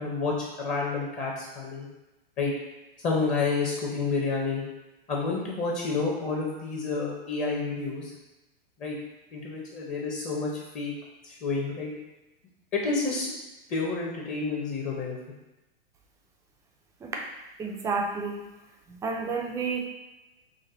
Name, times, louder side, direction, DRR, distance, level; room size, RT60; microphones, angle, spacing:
voice 1, 0.0-1.9 2.4-2.5 3.0-4.6 5.1-8.1 8.8-9.0 9.3-10.9 11.2-11.9 12.7-13.3 13.7-15.2, left 4 dB, 25° left, -3 dB, 0.8 m, -29 dB
voice 2, 17.6-18.4 18.9-19.9, right 4 dB, 10° right, 0 dB, 0.4 m, -30 dB
5.2 x 2.2 x 3.8 m, 1.0 s
hypercardioid pair, 130°, 30 cm